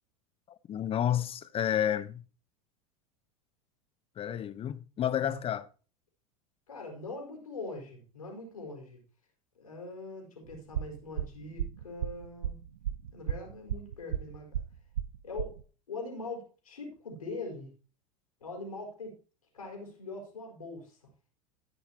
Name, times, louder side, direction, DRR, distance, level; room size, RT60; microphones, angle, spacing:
voice 1, 0.7-2.2 4.2-5.6, left 10 dB, 30° left, 1.0 m, -30 dB
voice 2, 6.7-9.0 9.5-12.6 13.1-14.5 15.2-17.7 18.4-19.1 19.5-21.0, left 3 dB, 90° left, 4.7 m, -42 dB
sound 1, 10.5-15.6, right 10 dB, 80° right, 0.6 m, -34 dB
14.0 x 9.8 x 3.0 m
hypercardioid pair, 90°, 18 cm